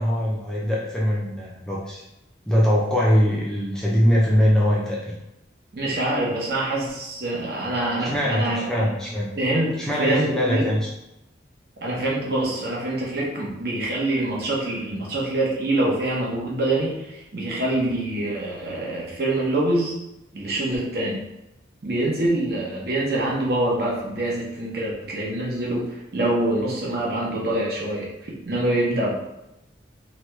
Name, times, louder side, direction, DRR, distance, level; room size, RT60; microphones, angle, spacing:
voice 1, 0.0-2.0 2.5-5.2 8.0-9.3 9.8-10.8, equal, 5° left, -6 dB, 0.4 m, -22 dB
voice 2, 5.7-8.9 9.4-10.7 11.8-19.9 20.3-21.3 21.8-29.1, right 1 dB, 55° right, -4 dB, 0.8 m, -25 dB
3.0 x 2.2 x 3.0 m, 0.90 s
head